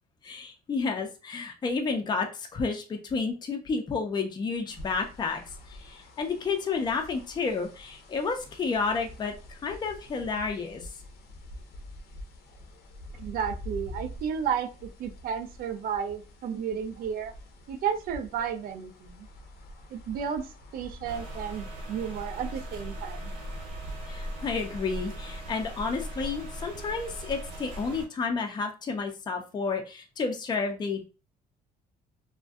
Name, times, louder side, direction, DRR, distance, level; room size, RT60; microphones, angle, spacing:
voice 1, 0.2-5.4 5.7-10.9 24.1-31.1, left 4 dB, 25° left, 3 dB, 0.4 m, -31 dB
sound 1, 4.7-21.6, left 1 dB, 70° left, 0.6 m, -46 dB
voice 2, 13.2-17.3 17.7-19.3 19.9-23.3, right 7 dB, 60° right, 8 dB, 0.4 m, -33 dB
sound 2, 21.0-28.1, equal, 80° right, 1.0 m, -38 dB
2.5 x 2.1 x 2.3 m, 0.33 s
cardioid pair, 110°, 17 cm